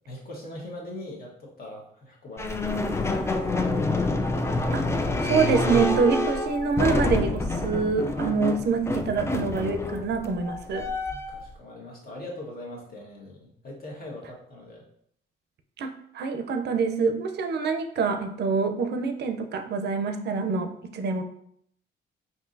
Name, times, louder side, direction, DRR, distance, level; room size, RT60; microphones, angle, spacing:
voice 1, 0.1-3.4 11.1-14.8, left 1 dB, 50° left, -2 dB, 1.3 m, -41 dB
sound 1, 2.4-11.5, left 2 dB, 15° left, 0.4 m, -27 dB
voice 2, 5.2-10.9 15.8-21.2, right 5 dB, 55° right, 7 dB, 0.5 m, -26 dB
4.5 x 2.7 x 2.6 m, 0.68 s
cardioid pair, 90°, 20 cm